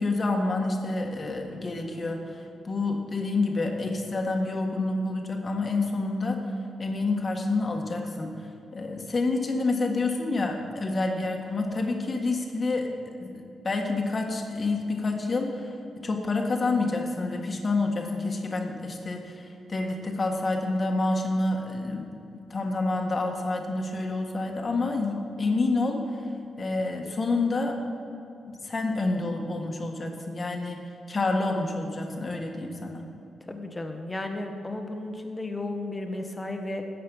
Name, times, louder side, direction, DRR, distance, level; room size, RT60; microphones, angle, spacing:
voice 1, 0.0-6.4 6.8-8.3 8.7-12.9 13.2-15.7 16.0-22.2 22.5-26.0 26.6-27.8 28.6-30.8 31.1-33.0, left 3 dB, 35° left, 2 dB, 1.7 m, -28 dB
voice 2, 33.4-36.9, left 2 dB, 20° left, 4 dB, 1.4 m, -34 dB
13.5 x 8.6 x 5.6 m, 2.8 s
cardioid pair, 85°, 0 cm